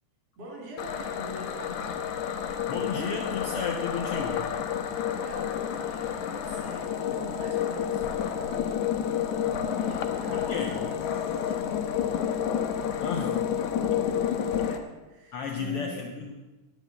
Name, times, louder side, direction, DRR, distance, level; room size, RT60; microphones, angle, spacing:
voice 1, 0.4-1.8 5.2-9.0 9.6-12.3 13.8-16.1, left 1 dB, 55° right, 0 dB, 4.3 m, -44 dB
sound 1, 0.8-14.8, left 9 dB, 80° left, 2.3 m, -30 dB
voice 2, 2.7-4.5 10.3-10.8 13.0-13.3 15.3-16.3, left 5 dB, 60° left, 2 dB, 1.7 m, -33 dB
10.0 x 9.8 x 8.3 m, 1.1 s
omnidirectional pair, 3.4 m